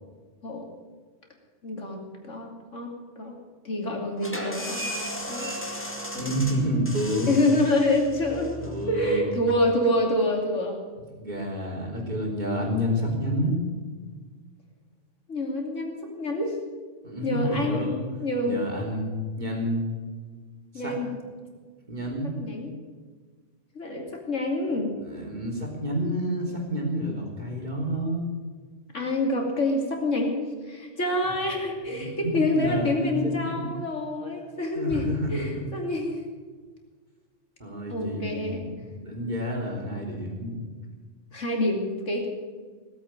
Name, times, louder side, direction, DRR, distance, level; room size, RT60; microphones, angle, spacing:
voice 1, 1.6-3.4 3.6-4.8 5.3-5.5 6.1-6.4 7.3-8.6 8.9-10.8 15.3-16.6 17.2-17.9 18.2-18.6 20.7-21.1 22.4-22.7 23.7-25.0 28.9-36.2 37.9-38.7 41.3-42.3, left 1 dB, 85° left, 1 dB, 3.2 m, -27 dB
sound 1, 4.2-9.6, equal, 10° left, 2.1 m, -36 dB
voice 2, 6.2-7.5 8.6-9.3 11.2-13.6 17.0-18.0 18.4-19.9 20.8-20.9 21.9-22.3 25.0-28.2 31.9-33.7 34.7-35.7 37.6-38.6 39.0-40.6, equal, 35° right, -1 dB, 3.8 m, -29 dB
18.5 x 8.3 x 8.9 m, 1.5 s
omnidirectional pair, 1.3 m